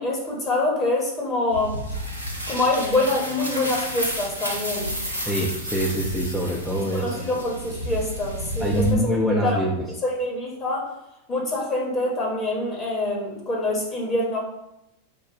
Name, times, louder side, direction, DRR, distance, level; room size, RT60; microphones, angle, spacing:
voice 1, 0.0-1.8 2.5-5.0 6.9-9.0 9.4-9.6 10.0-10.9 11.3-14.4, left 2 dB, 25° left, -2 dB, 1.1 m, -25 dB
sound 1, 1.5-8.9, equal, 90° left, 1.0 m, -31 dB
voice 2, 5.2-7.3 8.6-9.8, right 1 dB, ahead, -4 dB, 0.7 m, -24 dB
3.9 x 2.3 x 4.5 m, 0.86 s
figure-of-eight pair, 90°, 0 cm